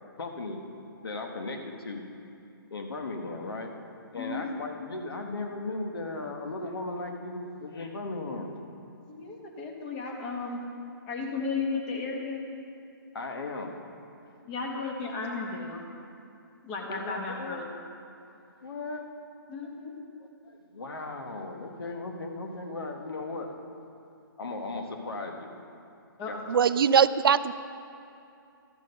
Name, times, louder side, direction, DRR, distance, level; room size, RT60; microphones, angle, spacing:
voice 1, 0.2-0.6 1.0-2.1 2.7-3.7 4.1-8.5 13.1-13.8 16.9-17.6 18.6-19.0 19.8-19.9 20.4-23.5 24.4-25.5 26.3-26.6, left 2 dB, 85° left, 3 dB, 1.5 m, -36 dB
voice 2, 4.1-4.5 9.1-10.6 11.1-12.4 14.4-15.8 16.6-17.7 19.5-20.0 26.2-26.4, left 4 dB, 25° left, 1 dB, 1.4 m, -34 dB
voice 3, 26.5-27.5, right 7 dB, 75° right, 15 dB, 0.4 m, -21 dB
13.5 x 6.4 x 5.4 m, 2.6 s
hypercardioid pair, 155°, 12 cm